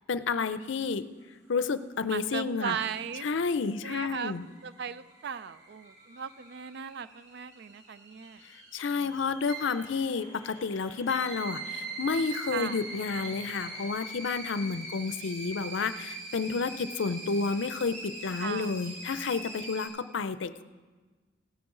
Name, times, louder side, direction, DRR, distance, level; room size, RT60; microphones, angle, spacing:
voice 1, 0.1-1.1 1.5-2.8 3.2-4.4 8.7-20.6, left 4 dB, 70° left, 13 dB, 0.5 m, -30 dB
voice 2, 2.1-3.3 3.8-4.3 4.6-8.4 9.0-9.2 12.5-12.8 16.5-17.3 18.4-18.7, right 7 dB, 60° right, 14 dB, 0.4 m, -38 dB
sound 1, 3.6-19.9, right 2 dB, 40° right, 3.8 m, -42 dB
sound 2, 9.6-14.5 14.8-14.9, left 2 dB, 25° left, 1.2 m, -55 dB
17.0 x 10.0 x 3.8 m, 1.3 s
head